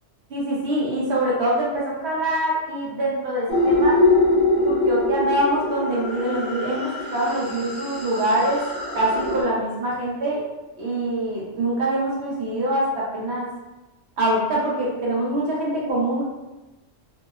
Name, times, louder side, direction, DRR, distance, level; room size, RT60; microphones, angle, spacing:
voice 1, 0.3-4.0 4.6-8.6 8.9-10.4 10.8-13.5 14.2-16.2, right 1 dB, 65° right, -5 dB, 0.9 m, -24 dB
sound 1, 3.5-9.4, left 2 dB, 35° left, 0.4 m, -23 dB
2.7 x 2.0 x 2.3 m, 1.1 s
omnidirectional pair, 1.2 m